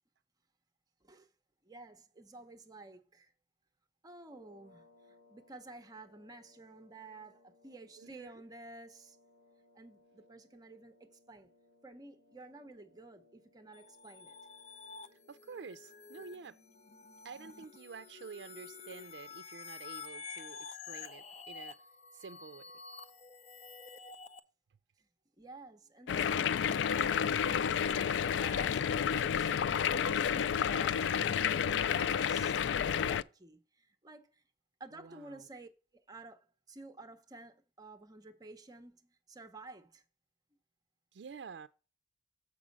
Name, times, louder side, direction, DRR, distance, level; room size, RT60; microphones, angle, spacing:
voice 1, 1.6-3.3 4.0-9.2 9.7-11.5 11.8-14.4 25.0-25.1 25.4-34.4 34.8-40.0, right 2 dB, 20° right, 0.7 m, -52 dB
sound 1, 4.2-19.3, left 2 dB, 70° left, 2.7 m, -67 dB
voice 2, 8.0-8.4 15.3-16.6 17.2-21.8 22.1-22.7 35.0-35.4 41.1-41.7, right 5 dB, 75° right, 0.4 m, -49 dB
sound 2, 13.7-24.4, left 5 dB, 40° left, 0.6 m, -49 dB
sound 3, 26.1-33.2, left 8 dB, 90° left, 0.3 m, -30 dB
7.4 x 5.2 x 5.2 m
head